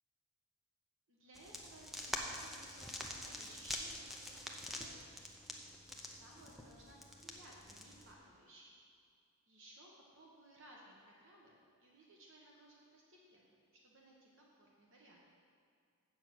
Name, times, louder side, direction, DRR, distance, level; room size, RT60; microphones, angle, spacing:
voice 1, 1.1-5.3 5.9-8.7 9.5-15.2, right 1 dB, 60° right, -3 dB, 1.3 m, -60 dB
sound 1, 1.3-8.1, left 1 dB, ahead, 0.6 m, -46 dB
7.9 x 7.3 x 6.1 m, 2.2 s
head